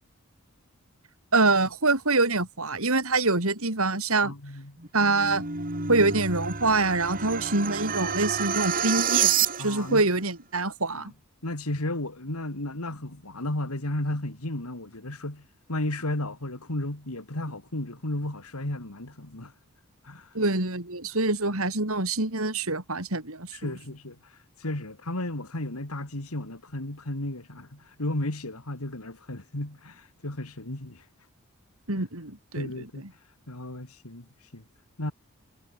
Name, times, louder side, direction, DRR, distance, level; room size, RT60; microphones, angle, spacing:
voice 1, 1.3-4.3 4.9-5.4 5.9-11.1 20.3-23.7 31.9-32.7, right 3 dB, 70° right, 4.5 m, -25 dB
voice 2, 4.1-4.8 9.6-10.0 10.9-11.1 11.4-19.5 20.0-20.3 23.5-31.0 32.6-33.1 33.5-34.6 35.0-35.1, left 1 dB, 80° left, 3.0 m, -34 dB
sound 1, 4.8-10.0, right 7 dB, 40° right, 3.6 m, -28 dB
head